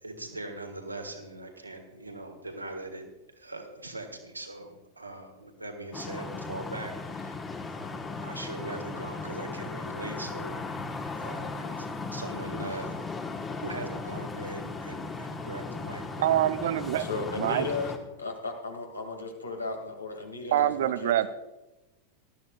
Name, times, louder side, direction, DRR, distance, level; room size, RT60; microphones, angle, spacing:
voice 1, 0.0-3.0 3.3-7.4 7.7-10.6 11.1-11.8 12.1-13.1 13.6-16.6, right 2 dB, 85° right, 4 dB, 1.7 m, -41 dB
sound 1, 5.9-18.0, left 3 dB, 20° left, 1.3 m, -37 dB
voice 2, 16.2-17.1 17.3-17.7 20.5-21.3, right 12 dB, 55° right, 15 dB, 0.5 m, -25 dB
voice 3, 17.0-17.9 18.2-21.3, left 3 dB, 80° left, 3 dB, 2.1 m, -35 dB
19.0 x 12.5 x 2.4 m, 1.0 s
figure-of-eight pair, 90°, 0 cm